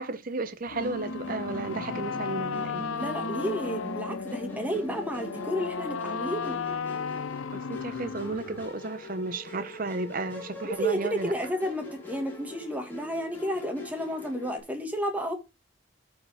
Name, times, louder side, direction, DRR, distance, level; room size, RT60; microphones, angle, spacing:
voice 1, 0.0-2.8 7.5-11.3, right 3 dB, 45° right, 0.7 m, -33 dB
sound 1, 0.7-8.7, left 6 dB, 80° left, 0.6 m, -35 dB
Musical instrument, 0.8-14.6, equal, 10° left, 3.3 m, -42 dB
voice 2, 2.9-6.6 10.6-15.4, equal, 10° right, 1.8 m, -31 dB
13.0 x 4.8 x 3.4 m
head